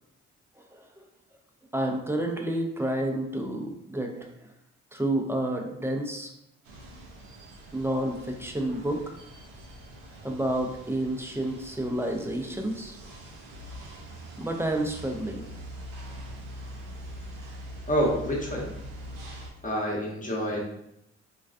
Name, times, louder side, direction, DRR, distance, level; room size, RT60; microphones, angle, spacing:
voice 1, 1.7-4.3 4.9-6.3 7.7-9.1 10.2-13.0 14.4-15.4, right 1 dB, 10° right, 2 dB, 0.3 m, -29 dB
sound 1, 6.6-19.5, equal, 90° right, 0.5 m, -43 dB
voice 2, 17.9-18.7 19.6-20.6, equal, 25° left, -3 dB, 0.9 m, -27 dB
2.3 x 2.3 x 2.3 m, 0.80 s
supercardioid pair, 65°, 31 cm